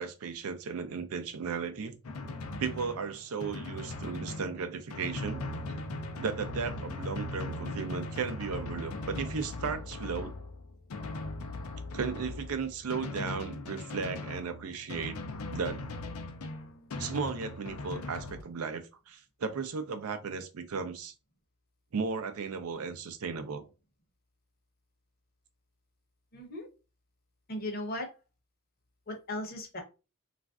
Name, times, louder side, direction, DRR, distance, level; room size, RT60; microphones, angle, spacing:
voice 1, 0.0-2.0 2.6-5.4 6.2-10.3 11.9-15.2 15.5-15.8 17.0-21.1 21.9-23.6, right 5 dB, 75° right, 0.5 m, -35 dB
Drum, 2.0-18.4, left 2 dB, 75° left, 0.5 m, -39 dB
voice 2, 26.3-26.7 27.5-28.1 29.1-29.8, left 1 dB, 40° left, 0.8 m, -37 dB
3.2 x 2.4 x 2.4 m
head